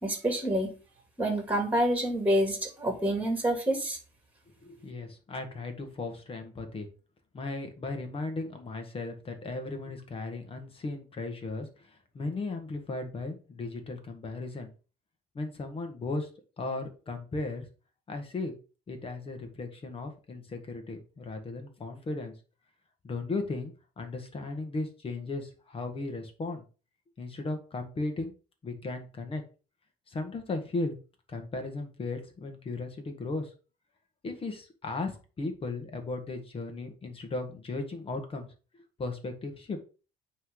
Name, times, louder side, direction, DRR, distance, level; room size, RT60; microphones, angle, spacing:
voice 1, 0.0-0.7 1.2-4.0, right 1 dB, 10° right, 2 dB, 2.5 m, -27 dB
voice 2, 4.6-6.9 7.3-14.7 15.3-16.3 16.6-17.6 18.1-18.6 18.9-22.3 23.0-26.6 27.2-28.3 28.6-29.4 30.1-31.0 31.3-33.5 34.2-38.5 39.0-39.8, left 3 dB, 35° left, 5 dB, 1.5 m, -36 dB
9.0 x 3.3 x 3.8 m, 0.35 s
cardioid pair, 110°, 17 cm